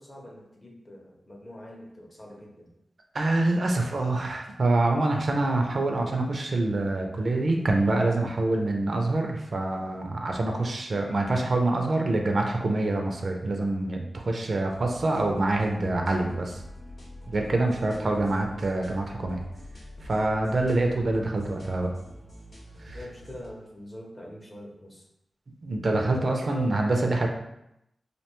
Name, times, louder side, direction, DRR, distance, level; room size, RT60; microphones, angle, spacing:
voice 1, 0.0-2.7 17.8-18.4 22.9-25.1 26.2-26.7, left 1 dB, 30° left, -1 dB, 0.6 m, -43 dB
voice 2, 3.1-16.6 17.3-19.4 20.0-21.9 22.9-23.0 25.6-27.3, right 2 dB, 60° right, 2 dB, 0.4 m, -26 dB
sound 1, 14.7-23.5, equal, 75° left, 0.8 m, -46 dB
2.6 x 2.2 x 2.9 m, 0.82 s
cardioid pair, 65°, 0 cm